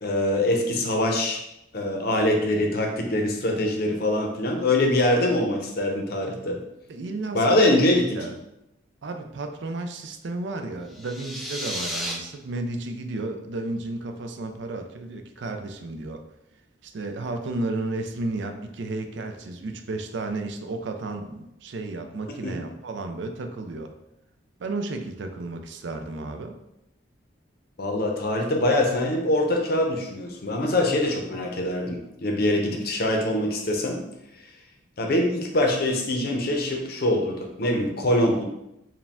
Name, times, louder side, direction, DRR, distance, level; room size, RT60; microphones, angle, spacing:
voice 1, 0.0-1.4 1.7-6.6 7.3-8.3 22.3-22.5 27.8-34.0 35.0-38.4, left 1 dB, 50° left, 2 dB, 0.6 m, -23 dB
voice 2, 6.9-7.7 8.2-8.3 9.0-16.2 16.8-23.9 24.6-26.5, right 2 dB, 65° right, 6 dB, 0.4 m, -33 dB
sound 1, 10.9-12.1, equal, ahead, 0.4 m, -32 dB
4.7 x 2.2 x 3.5 m, 0.86 s
head